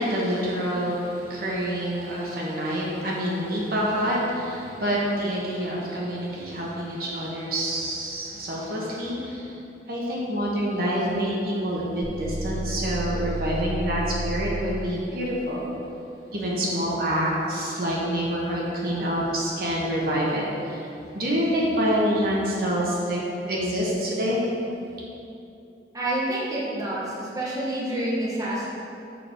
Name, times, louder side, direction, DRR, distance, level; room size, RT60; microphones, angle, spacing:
voice 1, 0.0-9.5 9.9-15.7 16.3-20.9 21.1-23.2 23.5-24.4, equal, 55° right, -4 dB, 1.4 m, -27 dB
sound 1, 12.0-14.8, right 1 dB, 85° right, 0.5 m, -31 dB
voice 2, 25.9-28.7, right 1 dB, 20° right, -7 dB, 1.4 m, -28 dB
6.9 x 6.7 x 4.6 m, 2.7 s
head